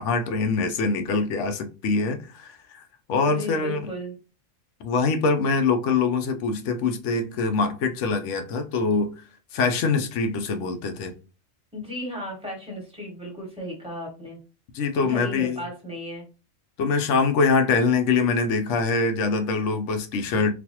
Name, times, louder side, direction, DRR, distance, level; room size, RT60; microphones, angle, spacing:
voice 1, 0.0-2.8 3.1-3.8 4.8-9.1 9.5-11.1 14.7-15.6 16.8-20.5, left 4 dB, 75° left, 0.9 m, -24 dB
voice 2, 3.3-4.1 11.7-14.4 14.9-16.3, left 1 dB, 5° right, 1.4 m, -35 dB
4.1 x 2.5 x 2.8 m
omnidirectional pair, 1.3 m